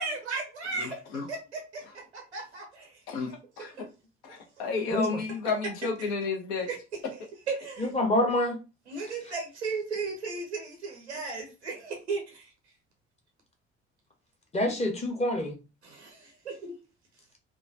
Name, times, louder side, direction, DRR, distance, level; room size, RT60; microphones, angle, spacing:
voice 1, 0.0-3.0 3.6-3.8 4.3-4.4 6.0-6.1 6.7-6.8 7.5-7.9 8.9-12.5 15.8-16.7, right 4 dB, 85° right, 2 dB, 0.6 m, -36 dB
voice 2, 0.8-1.3 3.1-3.3 3.6-3.7 4.2-6.7, left 4 dB, 65° left, 3 dB, 0.8 m, -31 dB
voice 3, 7.8-8.6 14.5-15.5, left 1 dB, 20° left, 1 dB, 1.0 m, -26 dB
3.0 x 2.2 x 2.5 m, 0.30 s
figure-of-eight pair, 45°, 33 cm